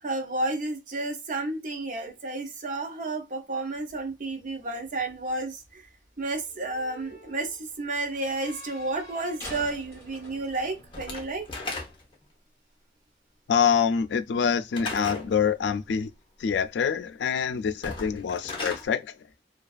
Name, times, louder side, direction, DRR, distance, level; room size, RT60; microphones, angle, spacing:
voice 1, 0.0-5.9 6.2-11.5, right 2 dB, 50° right, 0.6 m, -31 dB
sound 1, 3.8-12.0, left 1 dB, 15° left, 1.3 m, -48 dB
Slam / Wood, 10.9-12.2 14.7-15.3 17.7-18.9, left 3 dB, 30° left, 0.8 m, -35 dB
voice 2, 13.5-16.1 16.4-19.0, left 7 dB, 80° left, 0.3 m, -25 dB
2.5 x 2.3 x 2.3 m
head